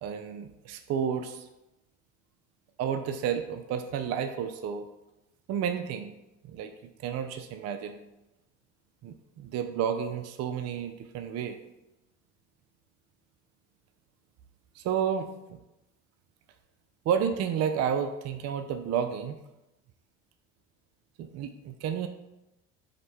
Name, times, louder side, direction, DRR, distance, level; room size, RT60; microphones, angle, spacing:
voice 1, 0.0-1.5 2.8-4.9 5.5-6.1 6.5-6.7 7.0-8.0 9.0-11.6 14.8-15.6 17.1-19.4 21.2-22.1, right 8 dB, 50° right, 8 dB, 0.4 m, -31 dB
5.1 x 2.1 x 4.3 m, 0.95 s
supercardioid pair, 80°, 33 cm